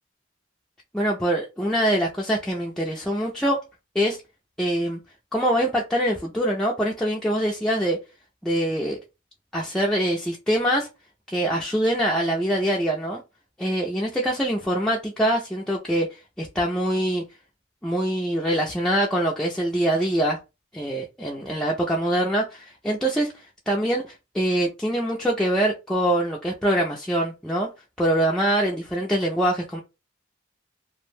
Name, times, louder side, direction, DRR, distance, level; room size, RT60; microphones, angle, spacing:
voice 1, 0.9-3.6 4.0-4.2 4.6-5.0 5.3-8.0 8.4-9.0 9.5-10.9 11.3-13.2 13.6-17.2 17.8-20.4 20.7-27.7 28.0-29.8, right 1 dB, 5° left, 0.3 m, -24 dB
2.5 x 2.0 x 3.1 m
head